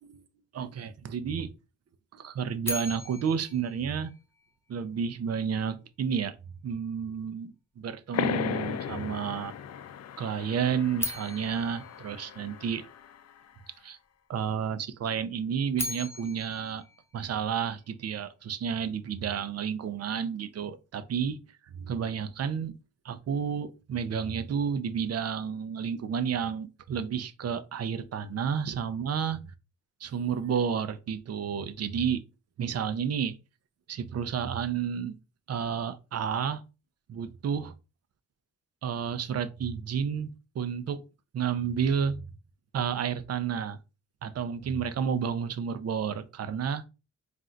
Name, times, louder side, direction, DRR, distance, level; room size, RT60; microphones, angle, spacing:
voice 1, 0.5-1.5 2.1-4.1 4.7-6.3 6.6-9.5 10.2-12.8 13.8-14.0 14.3-16.8 17.1-21.4 21.7-22.7 23.0-29.4 30.0-32.2 32.6-33.4 33.9-35.2 35.5-36.6 37.1-37.7 38.8-40.3 40.5-41.0 41.3-42.2 42.7-43.8 44.2-46.8, right 7 dB, 55° right, 0.6 m, -31 dB
sound 1, 2.6-4.8 10.9-13.1 15.5-17.9, left 1 dB, 10° left, 0.6 m, -39 dB
sound 2, 8.1-13.4, left 8 dB, 55° left, 0.5 m, -36 dB
3.8 x 2.6 x 4.3 m
cardioid pair, 90°, 30 cm